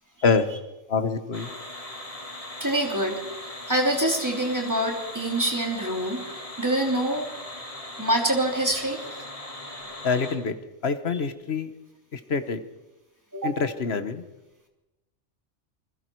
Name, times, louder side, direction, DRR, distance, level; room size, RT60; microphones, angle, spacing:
voice 1, 0.9-1.5 10.0-10.5 10.8-11.7 12.1-12.6 13.4-14.2, left 5 dB, 60° left, 10 dB, 1.5 m, -25 dB
sound 1, 1.3-10.4, left 1 dB, 30° left, 2.7 m, -39 dB
voice 2, 2.6-6.2 6.6-7.3 8.0-9.0 13.3-13.6, right 1 dB, 15° right, 1 dB, 3.3 m, -25 dB
28.5 x 21.0 x 4.7 m, 1.0 s
omnidirectional pair, 1.2 m